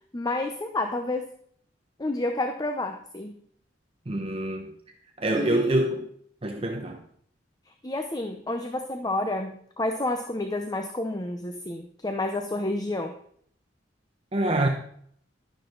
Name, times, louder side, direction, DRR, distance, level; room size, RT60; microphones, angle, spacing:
voice 1, 0.1-1.3 2.0-3.3 5.3-5.8 7.8-13.1, left 2 dB, 20° left, 0.8 m, -30 dB
voice 2, 4.1-4.8 5.2-6.1 6.4-7.0 14.3-14.7, right 1 dB, 30° right, 0.9 m, -26 dB
12.5 x 10.0 x 4.0 m
head